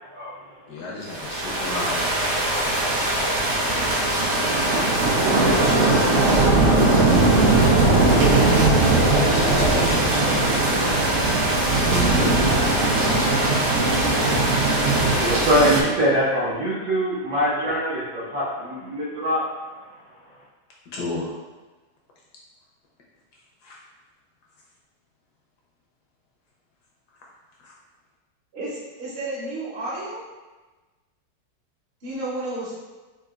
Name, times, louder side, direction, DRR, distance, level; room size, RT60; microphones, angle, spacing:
voice 1, 0.7-2.0 5.3-6.6 8.6-10.8 11.9-12.3 20.9-21.3 23.6-23.8 27.6-27.7, left 3 dB, 75° left, -3 dB, 1.0 m, -32 dB
sound 1, 1.1-15.8, right 2 dB, 85° right, 0.6 m, -19 dB
voice 2, 14.2-19.4, equal, 65° right, -8 dB, 1.1 m, -24 dB
voice 3, 28.5-30.2 32.0-32.8, right 2 dB, 50° right, -8 dB, 0.8 m, -31 dB
4.6 x 2.4 x 2.4 m, 1.2 s
omnidirectional pair, 2.0 m